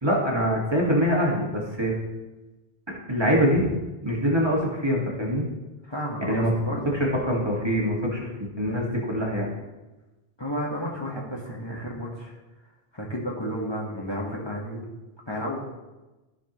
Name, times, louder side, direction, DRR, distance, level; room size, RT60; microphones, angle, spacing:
voice 1, 0.0-1.9 2.9-3.7 4.0-5.4 6.2-6.5 7.2-9.5, equal, 25° right, -3 dB, 1.7 m, -24 dB
voice 2, 5.8-6.9 10.4-12.3 12.9-14.8 15.3-15.7, equal, 25° left, -3 dB, 1.3 m, -32 dB
13.5 x 6.0 x 3.0 m, 1.1 s
omnidirectional pair, 1.0 m